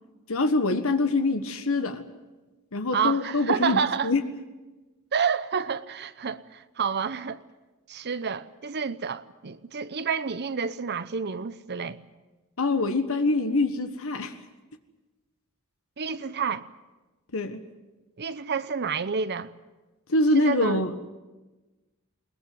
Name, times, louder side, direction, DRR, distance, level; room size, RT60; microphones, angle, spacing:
voice 1, 0.3-2.0 2.7-4.2 12.6-14.4 17.3-17.6 20.1-21.0, left 2 dB, 65° left, 1.4 m, -24 dB
voice 2, 2.9-4.1 5.1-7.4 7.9-12.0 16.0-16.7 18.2-19.5 20.3-20.8, right 6 dB, 50° right, 0.8 m, -29 dB
21.5 x 20.0 x 9.5 m
head